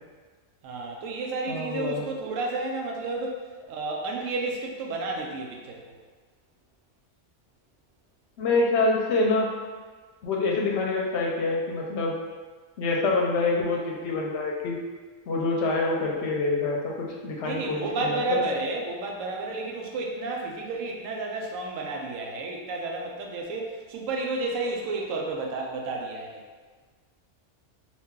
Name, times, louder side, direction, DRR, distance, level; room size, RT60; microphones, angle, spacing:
voice 1, 0.6-5.8 17.4-26.4, right 3 dB, 90° right, 0 dB, 1.0 m, -31 dB
voice 2, 1.5-2.0 8.4-9.5 10.2-12.2 12.8-14.8 15.3-18.4, left 3 dB, 65° left, -2 dB, 0.8 m, -26 dB
2.9 x 2.5 x 3.6 m, 1.4 s
omnidirectional pair, 1.3 m